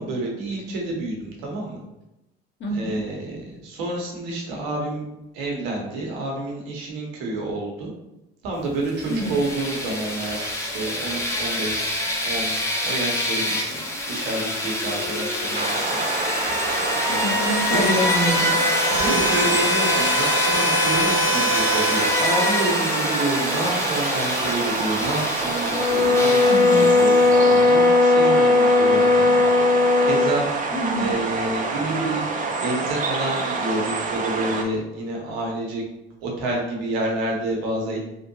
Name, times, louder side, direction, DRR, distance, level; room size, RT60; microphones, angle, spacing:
voice 1, 0.0-1.8 2.7-5.0 5.3-7.9 8.4-12.5 12.8-16.0 17.7-18.0 19.0-30.5 30.9-32.2 32.6-35.8 36.2-38.2, right 2 dB, 70° right, -1 dB, 1.0 m, -29 dB
voice 2, 2.6-3.0 9.1-9.3 17.1-18.6 18.9-19.1 26.5-27.0 30.7-31.2, equal, 40° left, 1 dB, 0.8 m, -27 dB
sound 1, 8.9-27.6, left 1 dB, 10° left, 0.7 m, -25 dB
sound 2, 15.5-34.6, right 3 dB, 25° right, 0.5 m, -27 dB
sound 3, 25.7-30.4, left 3 dB, 75° left, 0.6 m, -17 dB
3.2 x 2.6 x 2.7 m, 0.91 s
hypercardioid pair, 60°, 30 cm